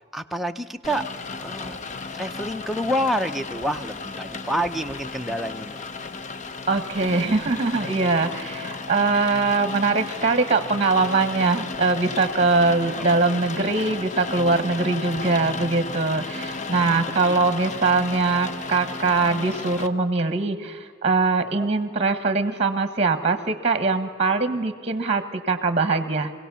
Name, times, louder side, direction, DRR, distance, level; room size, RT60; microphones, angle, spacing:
voice 1, 0.1-1.1 1.4-1.8 2.1-5.8 17.3-17.4 19.2-19.3, equal, ahead, 5 dB, 0.6 m, -28 dB
Rain, 0.8-19.9, left 4 dB, 40° left, 0.7 m, -34 dB
voice 2, 6.7-26.3, right 3 dB, 35° right, 11 dB, 1.3 m, -22 dB
25.0 x 17.0 x 7.0 m, 2.1 s
head